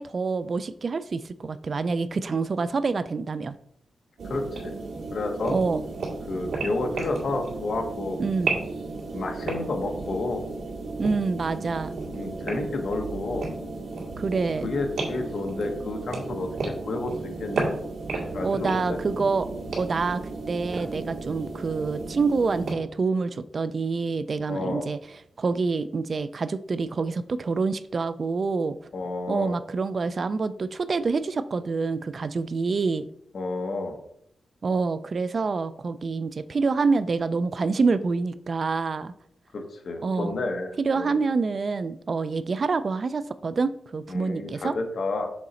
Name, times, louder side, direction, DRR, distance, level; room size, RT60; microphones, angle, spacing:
voice 1, 0.0-3.6 5.5-5.8 8.2-8.6 11.0-12.0 14.2-14.7 18.4-19.5 19.8-25.0 25.4-28.8 29.3-33.1 34.6-39.1 40.0-40.3 40.8-44.8, right 4 dB, 45° right, 14 dB, 0.3 m, -27 dB
voice 2, 4.2-4.7 5.1-5.6 6.3-8.2 9.1-10.5 12.1-13.5 14.6-17.7 18.3-19.0 24.5-24.9 28.9-29.6 33.3-34.0 39.5-41.2 44.1-45.3, left 2 dB, 60° left, 4 dB, 1.1 m, -30 dB
sound 1, 4.2-22.7, right 3 dB, 85° right, 1.9 m, -33 dB
6.3 x 3.9 x 4.2 m, 0.69 s
wide cardioid pair, 140°, 0 cm